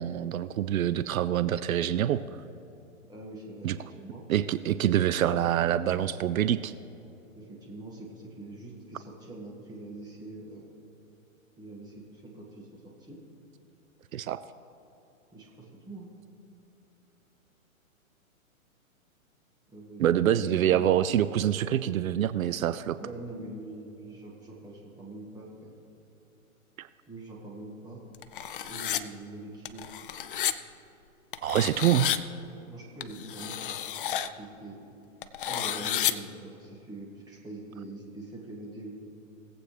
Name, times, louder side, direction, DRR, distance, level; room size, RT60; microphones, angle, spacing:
voice 1, 0.0-2.2 3.6-3.8 4.3-6.7 14.1-14.4 20.0-23.0 26.8-26.9 31.4-32.1, right 11 dB, 80° right, 14 dB, 0.5 m, -26 dB
voice 2, 3.1-4.2 7.3-10.7 11.6-13.2 15.3-16.1 19.7-20.9 23.0-25.7 27.1-28.0 28.7-29.9 32.6-33.8 34.1-34.8 35.4-39.0, right 2 dB, 10° right, -4 dB, 1.9 m, -44 dB
sound 1, 28.1-29.0 29.7-30.5 31.3-32.2 33.0-34.3 35.2-36.1, left 10 dB, 40° left, 0.4 m, -31 dB
20.0 x 8.1 x 3.3 m, 3.0 s
hypercardioid pair, 145°, 42 cm